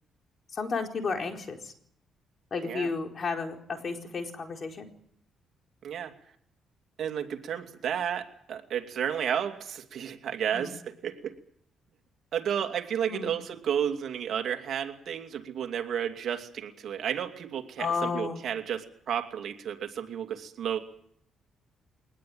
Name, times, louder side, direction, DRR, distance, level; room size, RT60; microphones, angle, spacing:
voice 1, 0.5-1.7 2.5-4.9 10.5-10.7 13.1-13.3 17.8-18.4, left 4 dB, 45° left, 3 dB, 4.4 m, -32 dB
voice 2, 5.8-6.1 7.0-11.3 12.3-20.8, right 9 dB, 65° right, 5 dB, 2.7 m, -32 dB
23.0 x 19.5 x 9.0 m, 0.67 s
cardioid pair, 90°, 0 cm